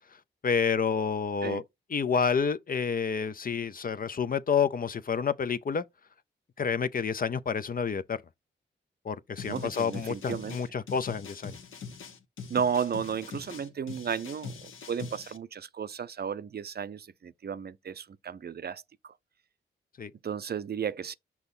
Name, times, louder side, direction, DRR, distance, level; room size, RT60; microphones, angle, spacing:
voice 1, 0.4-1.6 1.9-5.8 6.6-8.2 9.0-11.6 20.0-20.1, left 6 dB, 45° left, 0.6 m, -29 dB
sound 1, 9.4-15.4, left 5 dB, 75° left, 1.1 m, -43 dB
voice 2, 9.5-10.6 12.5-19.1 20.2-21.2, right 7 dB, 50° right, 0.6 m, -34 dB
6.2 x 2.8 x 5.4 m
cardioid pair, 50°, 21 cm